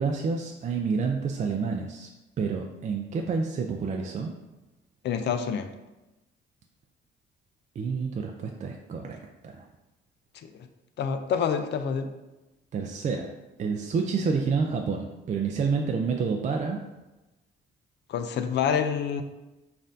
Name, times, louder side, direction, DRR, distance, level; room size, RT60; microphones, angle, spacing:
voice 1, 0.0-2.1 2.4-4.3 7.8-9.7 12.7-13.3 13.6-16.8, right 5 dB, 40° right, 2 dB, 0.4 m, -29 dB
voice 2, 5.0-5.7 10.4-10.5 11.0-12.1 18.1-19.2, left 7 dB, 60° left, 8 dB, 0.4 m, -27 dB
5.3 x 2.5 x 2.6 m, 1.0 s
cardioid pair, 90°, 20 cm